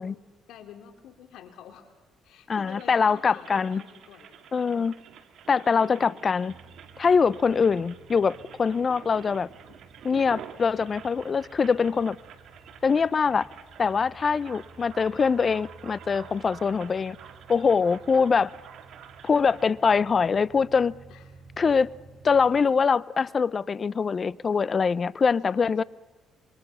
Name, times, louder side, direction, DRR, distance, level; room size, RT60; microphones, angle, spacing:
voice 1, 0.0-1.9 2.2-4.8 5.8-6.2 7.0-7.2 9.7-9.8 13.9-14.0 17.9-18.0 21.1-21.4 22.2-22.4 25.5-25.8, left 9 dB, 80° left, 7 dB, 2.9 m, -49 dB
voice 2, 2.5-3.8 4.5-4.9 5.5-6.5 7.0-9.5 10.0-12.2 12.8-13.5 13.8-17.2 17.5-18.5 19.2-21.0 21.6-21.9 22.2-25.8, left 5 dB, 40° left, 20 dB, 0.7 m, -23 dB
sound 1, 2.6-19.7, right 8 dB, 70° right, 2.4 m, -48 dB
sound 2, 6.5-22.6, right 4 dB, 40° right, 8.0 m, -53 dB
27.0 x 24.0 x 5.7 m, 1.2 s
cardioid pair, 85°, 0 cm